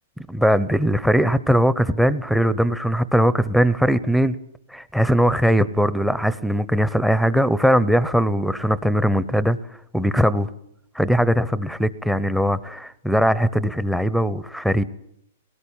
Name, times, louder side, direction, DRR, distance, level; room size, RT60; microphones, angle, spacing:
voice 1, 0.3-4.4 4.7-9.6 9.9-10.5 10.9-14.8, equal, ahead, 15 dB, 0.8 m, -20 dB
21.0 x 18.5 x 8.9 m, 0.75 s
hypercardioid pair, 140°, 0 cm